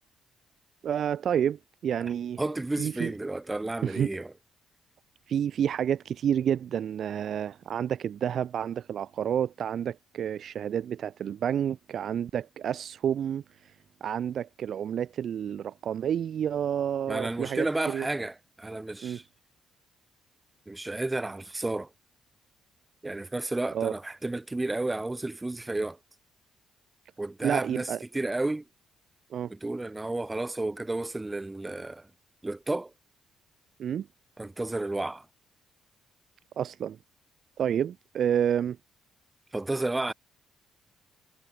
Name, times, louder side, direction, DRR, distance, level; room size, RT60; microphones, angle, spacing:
voice 1, 0.8-2.4 2.8-3.1 3.8-4.2 5.3-13.4 14.0-18.1 19.0-19.2 23.7-23.9 27.4-28.0 29.3-29.5 33.8-34.1 36.6-37.0 37.6-38.8, right 9 dB, 60° right, 1.9 m, -29 dB
voice 2, 2.4-4.3 17.1-19.2 20.7-21.9 23.0-26.0 27.2-27.9 28.1-28.6 29.5-32.1 32.4-32.9 34.4-35.3 39.5-40.1, right 2 dB, 15° right, 5.7 m, -32 dB
cardioid pair, 90°, 0 cm